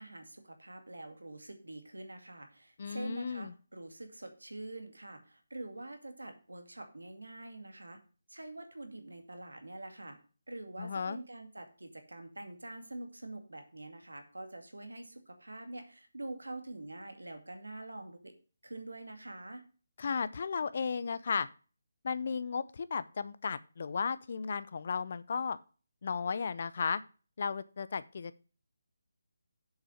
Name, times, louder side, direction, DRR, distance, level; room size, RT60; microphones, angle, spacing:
voice 1, 0.0-8.0 8.3-10.2 10.5-18.3 18.6-19.6, right 2 dB, 90° right, 6 dB, 2.3 m, -45 dB
voice 2, 2.8-3.5 10.8-11.2 20.0-21.5 22.0-25.6 26.0-27.0 27.4-28.4, left 5 dB, 50° left, 14 dB, 0.6 m, -34 dB
7.4 x 6.2 x 6.4 m, 0.36 s
figure-of-eight pair, 155°, 0 cm